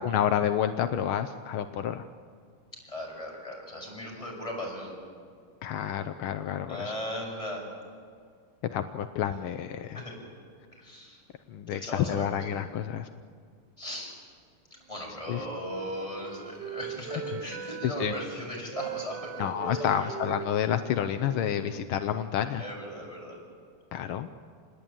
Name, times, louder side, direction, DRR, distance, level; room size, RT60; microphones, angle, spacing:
voice 1, 0.0-2.1 5.6-6.9 8.7-10.0 11.5-13.1 15.3-15.4 17.8-18.1 19.4-22.6 23.9-24.3, left 9 dB, 80° left, 9 dB, 1.7 m, -29 dB
voice 2, 2.8-5.0 6.7-7.6 9.9-10.2 10.7-11.2 11.7-12.4 13.8-14.1 14.9-20.1 22.6-23.4, left 1 dB, 15° left, -2 dB, 6.9 m, -38 dB
Wind instrument woodwind instrument, 15.3-18.2 18.7-22.5, right 8 dB, 60° right, 1.5 m, -41 dB
28.0 x 20.0 x 8.8 m, 2.1 s
omnidirectional pair, 2.3 m